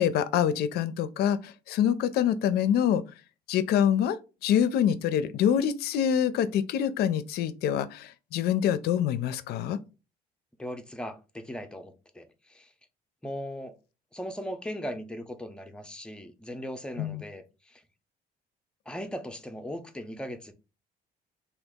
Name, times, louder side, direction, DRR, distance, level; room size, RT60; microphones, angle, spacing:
voice 1, 0.0-3.0 3.5-4.2 4.4-9.8 17.0-17.2, left 9 dB, 70° left, 0.4 m, -25 dB
voice 2, 10.6-12.7 13.2-13.8 14.1-17.8 18.9-20.5, equal, 5° left, 0.5 m, -38 dB
2.9 x 2.3 x 3.5 m
cardioid pair, 110°, 17 cm